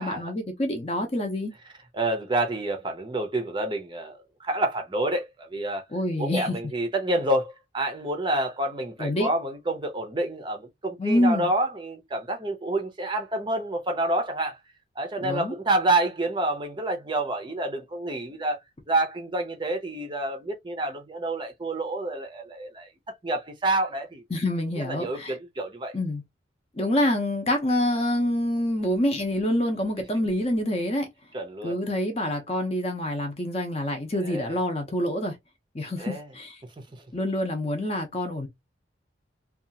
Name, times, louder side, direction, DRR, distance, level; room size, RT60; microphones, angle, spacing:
voice 1, 0.0-1.5 5.9-6.6 9.0-9.3 11.0-11.5 15.2-15.5 24.3-25.4 25.9-26.2 26.8-31.1 31.6-35.4 35.7-36.6 37.1-38.5, left 1 dB, 30° left, 0.6 m, -26 dB
voice 2, 1.9-5.8 6.2-14.6 15.0-18.6 18.9-22.9 23.2-24.2 24.8-25.9 31.3-31.8 34.2-34.6 36.0-36.3 36.9-37.0, right 1 dB, 25° right, 0.5 m, -28 dB
2.7 x 2.3 x 2.7 m
head